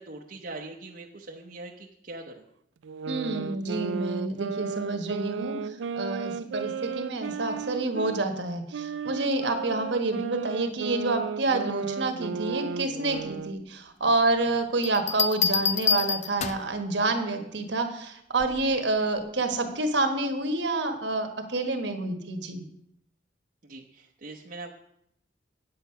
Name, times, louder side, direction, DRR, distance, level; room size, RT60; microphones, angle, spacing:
voice 1, 0.0-2.5 23.6-24.7, right 2 dB, 50° right, -1 dB, 0.8 m, -42 dB
sound 1, 2.8-8.2 8.7-13.6, right 6 dB, 85° right, 0.4 m, -34 dB
voice 2, 3.1-22.6, right 2 dB, 65° right, 6 dB, 1.3 m, -28 dB
Bell, 14.8-16.8 18.4-18.7, left 6 dB, 40° left, 0.4 m, -27 dB
8.5 x 8.1 x 5.6 m, 0.77 s
head